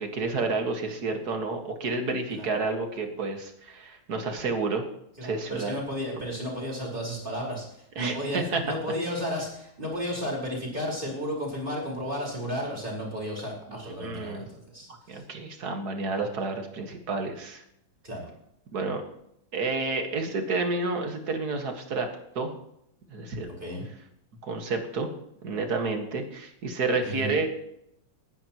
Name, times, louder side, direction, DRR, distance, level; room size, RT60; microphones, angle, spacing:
voice 1, 0.0-4.8 5.2-5.8 8.0-8.6 13.7-14.5 15.1-17.6 18.7-19.0 19.5-22.1 22.4-22.5 23.1-23.5 24.4-25.1 25.4-27.5, right 3 dB, 50° right, 4 dB, 2.2 m, -30 dB
voice 2, 5.2-15.2 18.0-18.3 23.6-23.9 27.0-27.3, equal, 25° right, -3 dB, 4.9 m, -33 dB
20.0 x 10.5 x 3.0 m, 0.77 s
omnidirectional pair, 2.3 m